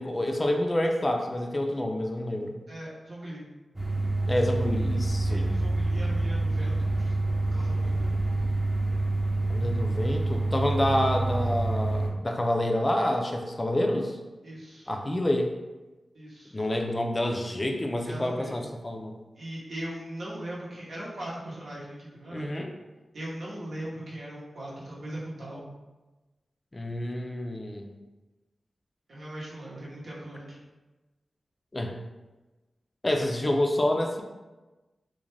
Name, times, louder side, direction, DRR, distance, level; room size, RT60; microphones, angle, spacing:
voice 1, 0.0-2.6 4.3-5.5 9.5-14.2 14.9-15.5 16.5-19.1 22.3-22.7 26.7-27.9 31.7-32.0 33.0-34.2, left 1 dB, 30° left, 3 dB, 0.3 m, -28 dB
voice 2, 2.7-3.4 5.2-8.1 14.4-14.9 16.1-16.6 18.1-18.7 19.3-22.5 23.1-25.6 29.1-30.6, right 1 dB, 70° right, -6 dB, 0.9 m, -39 dB
sound 1, 3.8-12.1, right 2 dB, 20° right, 0.6 m, -27 dB
2.4 x 2.1 x 3.1 m, 1.1 s
cardioid pair, 60°, 0 cm